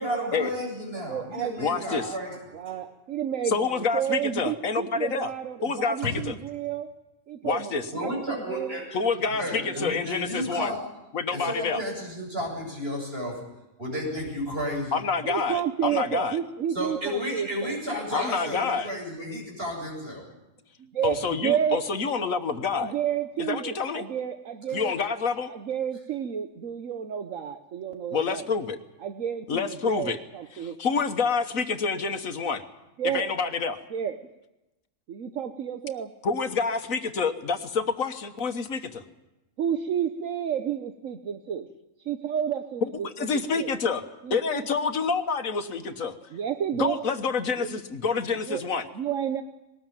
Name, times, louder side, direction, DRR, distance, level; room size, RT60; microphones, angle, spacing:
voice 1, 0.0-2.4 2.7-2.8 6.0-6.2 7.9-8.9 9.4-10.9 11.3-13.4 13.8-15.0 16.7-20.3 24.8-24.9, equal, 45° right, -1 dB, 8.2 m, -32 dB
voice 2, 1.1-2.2 2.5-6.9 7.3-8.8 15.2-17.7 20.8-21.9 22.7-24.9 25.5-28.4 29.0-30.8 33.0-33.3 33.9-34.2 35.1-36.1 39.6-41.7 42.1-42.8 43.6-43.7 44.2-44.6 46.3-47.0 47.6-47.8 48.5-48.6 49.0-49.4, right 9 dB, 70° right, 8 dB, 1.3 m, -31 dB
voice 3, 1.6-2.1 3.4-5.3 5.6-6.3 7.4-7.9 8.9-10.7 11.1-11.8 14.9-16.4 18.1-18.9 21.0-22.9 23.4-24.1 24.7-25.5 28.1-28.8 29.5-30.2 30.5-32.6 33.0-33.8 36.2-39.0 42.8-44.0 44.3-46.1 46.8-48.9, left 5 dB, 75° left, 8 dB, 1.7 m, -28 dB
21.0 x 19.0 x 9.1 m, 0.99 s
omnidirectional pair, 1.4 m